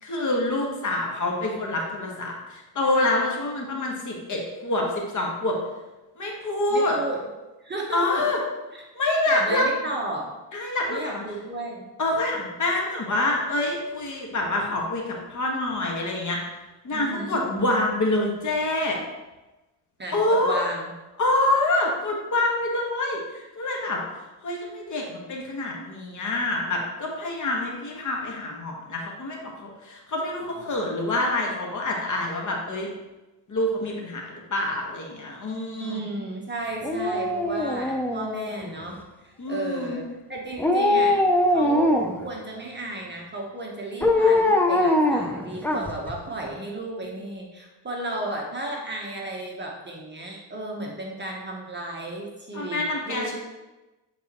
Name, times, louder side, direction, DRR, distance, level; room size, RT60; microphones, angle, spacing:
voice 1, 0.0-5.6 6.2-7.0 7.9-8.4 8.9-9.7 10.5-11.2 12.0-16.4 16.8-19.0 20.1-20.6 21.2-24.0 24.4-32.9 33.5-36.0 39.4-40.0 52.5-53.4, left 2 dB, 35° left, -1 dB, 1.5 m, -26 dB
voice 2, 6.7-7.2 7.6-8.2 8.7-8.8 9.3-10.3 10.9-11.9 16.9-17.5 20.0-20.9 35.8-40.0 40.3-41.2 41.5-53.4, right 2 dB, 20° right, -1 dB, 1.0 m, -34 dB
Dog, 36.8-38.9 40.6-42.3 44.0-46.1 46.5-46.6, left 1 dB, 5° left, 0.4 m, -22 dB
8.4 x 4.1 x 3.0 m, 1.1 s
cardioid pair, 100°, 50 cm